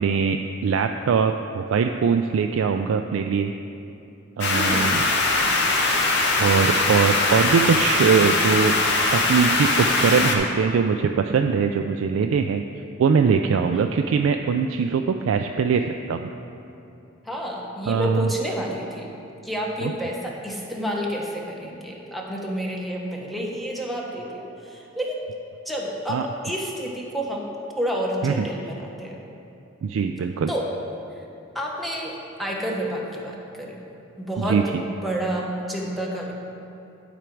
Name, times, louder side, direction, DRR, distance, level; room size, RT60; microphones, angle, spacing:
voice 1, 0.0-3.5 4.4-5.0 6.4-8.7 9.1-12.6 13.0-16.3 17.9-18.3 19.8-19.9 26.1-26.2 28.2-28.5 29.8-30.5 34.5-34.6, right 6 dB, 75° right, 5 dB, 0.3 m, -22 dB
sound 1, 4.4-10.4, left 2 dB, 60° left, 1.0 m, -21 dB
voice 2, 4.5-5.0 13.6-13.9 17.2-19.1 19.4-25.2 25.7-29.2 30.5-30.7 31.2-31.3 31.5-33.8 34.2-36.3, equal, ahead, -2 dB, 1.0 m, -30 dB
11.0 x 5.0 x 4.6 m, 2.8 s
head